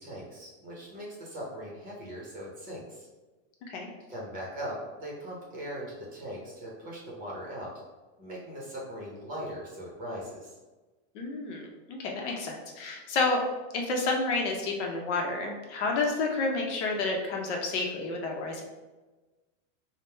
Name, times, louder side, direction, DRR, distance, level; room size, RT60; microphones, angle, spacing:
voice 1, 0.0-3.1 4.1-7.7 8.2-10.6, equal, 20° right, -4 dB, 0.7 m, -40 dB
voice 2, 11.1-11.6 11.9-13.4 13.7-18.6, left 3 dB, 60° left, 1 dB, 0.8 m, -30 dB
3.6 x 2.1 x 4.3 m, 1.2 s
supercardioid pair, 175°, 39 cm